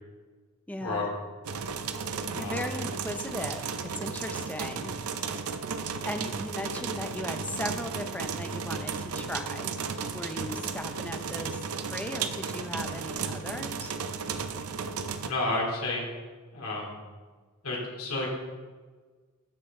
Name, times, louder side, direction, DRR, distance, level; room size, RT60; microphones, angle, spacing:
voice 1, 0.7-1.1 2.4-4.9 6.0-9.8 10.1-14.0, left 1 dB, 5° left, 6 dB, 0.6 m, -37 dB
sound 1, 1.4-15.3, right 5 dB, 80° right, 0.5 m, -34 dB
voice 2, 2.3-2.8 15.2-16.0 16.5-17.0 17.6-18.3, left 2 dB, 75° left, -3 dB, 2.5 m, -31 dB
13.0 x 5.0 x 3.6 m, 1.4 s
head